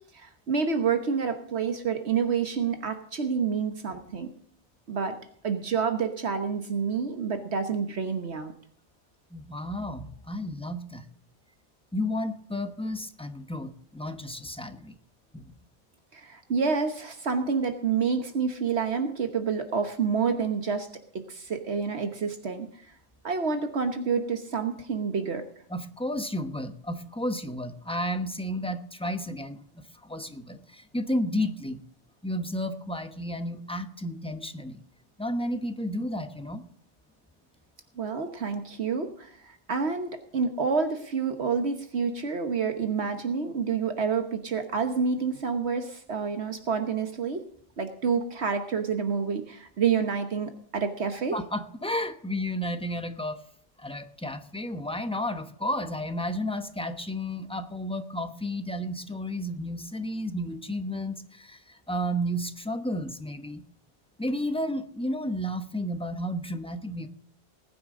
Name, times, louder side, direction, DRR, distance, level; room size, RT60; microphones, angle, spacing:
voice 1, 0.1-4.3 4.9-5.2 5.4-8.5 16.1-20.9 21.1-22.8 23.2-25.4 38.0-47.4 47.8-51.4, right 5 dB, 70° right, 6 dB, 1.4 m, -28 dB
voice 2, 9.3-11.1 11.9-15.0 15.3-15.5 25.7-31.8 32.2-34.8 35.2-36.6 51.3-53.5 53.8-63.6 64.2-67.1, equal, 5° left, 7 dB, 0.9 m, -32 dB
20.5 x 9.5 x 3.8 m, 0.62 s
omnidirectional pair, 1.2 m